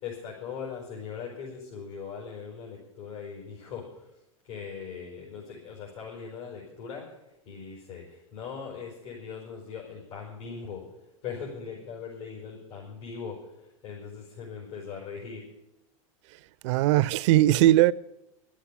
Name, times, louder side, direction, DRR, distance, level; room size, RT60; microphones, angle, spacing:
voice 1, 0.0-4.1 4.4-7.1 7.5-10.9 11.2-13.5 13.8-15.4, left 6 dB, 75° left, 5.6 m, -40 dB
voice 2, 16.6-17.9, right 15 dB, 60° right, 0.5 m, -19 dB
12.5 x 8.5 x 10.0 m
hypercardioid pair, 110°, 17 cm